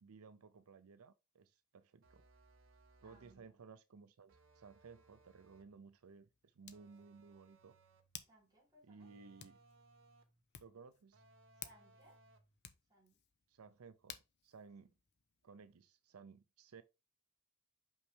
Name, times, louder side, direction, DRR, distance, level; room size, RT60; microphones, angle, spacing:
voice 1, 0.0-2.3 3.0-7.8 8.8-9.6 10.6-11.2 13.5-14.9 15.4-16.8, right 5 dB, 85° right, 0.5 m, -58 dB
sound 1, 2.0-3.5 4.3-5.8 6.7-8.2 9.0-10.4 11.1-12.6, right 2 dB, 65° right, 1.1 m, -67 dB
voice 2, 3.0-3.6 8.2-9.1 11.5-12.2 12.9-13.2 14.8-14.9, right 1 dB, 20° right, 3.2 m, -67 dB
Hands, 5.1-15.8, left 9 dB, 55° left, 0.7 m, -59 dB
5.7 x 5.4 x 3.3 m
head